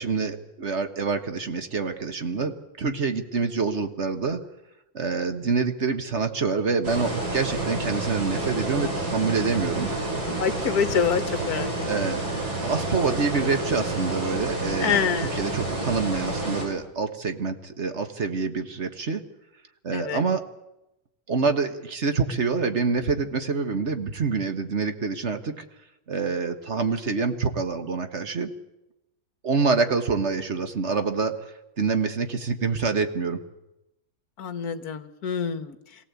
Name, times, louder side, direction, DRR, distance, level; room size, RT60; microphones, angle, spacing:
voice 1, 0.0-4.4 4.9-9.9 11.9-12.3 12.6-19.2 19.8-20.4 21.3-25.6 26.1-28.5 29.4-31.4 31.8-33.4, right 4 dB, 40° right, 8 dB, 1.5 m, -26 dB
sound 1, 6.8-16.7, right 2 dB, 90° right, 5.8 m, -29 dB
voice 2, 10.4-11.7 14.8-15.3 19.9-20.2 34.4-35.8, left 7 dB, 55° left, 11 dB, 1.6 m, -26 dB
23.0 x 17.0 x 8.3 m, 0.89 s
omnidirectional pair, 2.1 m